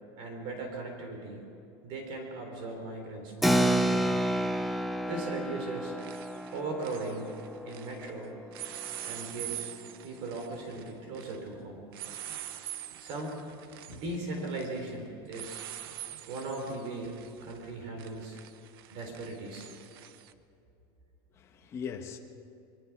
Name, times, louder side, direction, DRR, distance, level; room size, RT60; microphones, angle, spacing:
voice 1, 0.2-1.4 1.8-4.2 5.0-5.9 6.5-7.3 7.7-8.3 9.0-9.7 10.0-11.9 13.0-13.4 13.9-15.6 16.3-18.4 18.9-19.7, right 2 dB, 45° right, 3.8 m, -38 dB
sound 1, 3.3-3.4 5.1-5.4 5.7-8.1 8.5-20.3, right 12 dB, 75° right, 1.0 m, -45 dB
Keyboard (musical), 3.4-9.4, right 1 dB, ahead, 0.6 m, -30 dB
voice 2, 13.7-14.0 21.3-22.2, left 7 dB, 20° left, 1.4 m, -41 dB
26.0 x 23.0 x 6.1 m
supercardioid pair, 170°, 12 cm